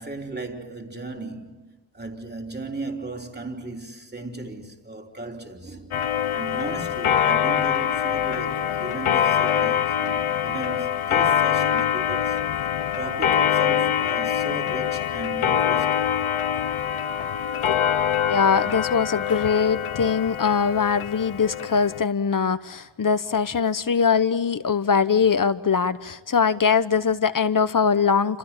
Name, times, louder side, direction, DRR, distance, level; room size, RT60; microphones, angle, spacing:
voice 1, 0.0-6.0 6.3-12.5 12.9-16.1, right 3 dB, 20° right, 3.3 m, -36 dB
Clock, 5.9-22.0, left 9 dB, 80° left, 1.0 m, -24 dB
voice 2, 18.3-28.4, left 6 dB, 40° left, 1.0 m, -22 dB
29.5 x 27.0 x 7.4 m
wide cardioid pair, 165°, 48 cm